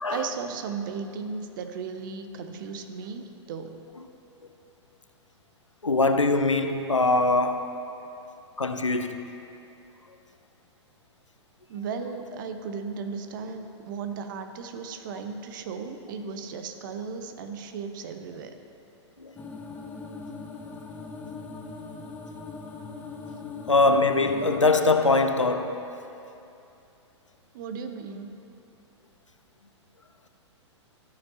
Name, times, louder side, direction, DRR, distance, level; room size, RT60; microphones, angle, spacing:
voice 1, 0.1-3.8 11.7-18.6 27.5-28.3, right 5 dB, 45° right, 0.6 m, -36 dB
voice 2, 5.8-7.8 8.6-9.2 19.2-19.3 23.7-25.8, left 3 dB, 90° left, 0.5 m, -22 dB
sound 1, 19.4-24.6, left 4 dB, 10° left, 0.4 m, -40 dB
12.5 x 6.8 x 2.8 m
figure-of-eight pair, 105°, 15 cm